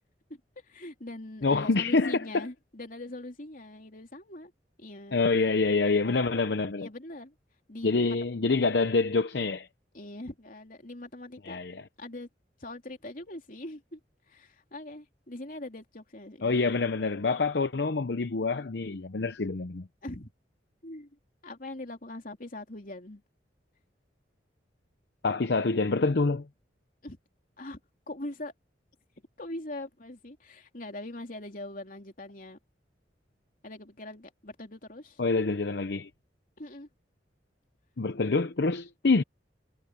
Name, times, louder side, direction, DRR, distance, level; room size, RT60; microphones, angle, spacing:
voice 1, 0.3-4.5 4.8-5.2 6.8-7.3 7.7-8.0 8.3-8.4 9.9-11.6 12.0-12.3 12.6-14.0 14.3-16.6 20.0-20.3 20.8-21.1 21.4-23.2 27.0-27.2 27.6-27.8 28.1-28.5 29.4-32.6 33.6-35.2 36.6-36.9, left 1 dB, 50° left, 3.4 m, -42 dB
voice 2, 1.4-2.5 5.1-6.9 7.8-9.7 11.4-11.8 16.4-19.9 25.2-26.5 35.2-36.1 38.0-39.2, left 3 dB, 65° left, 0.7 m, -26 dB
head